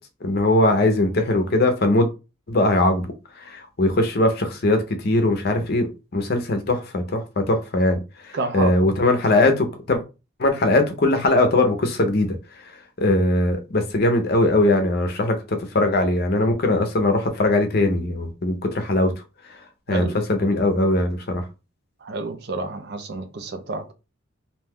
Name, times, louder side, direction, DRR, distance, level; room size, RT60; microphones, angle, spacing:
voice 1, 0.2-2.1 2.5-3.1 3.4-10.0 10.4-12.4 13.0-19.1 19.9-21.5, left 2 dB, 45° left, 0.5 m, -20 dB
voice 2, 8.3-8.9 19.9-20.2 22.0-23.9, right 3 dB, 50° right, 0.4 m, -29 dB
2.6 x 2.2 x 3.4 m
head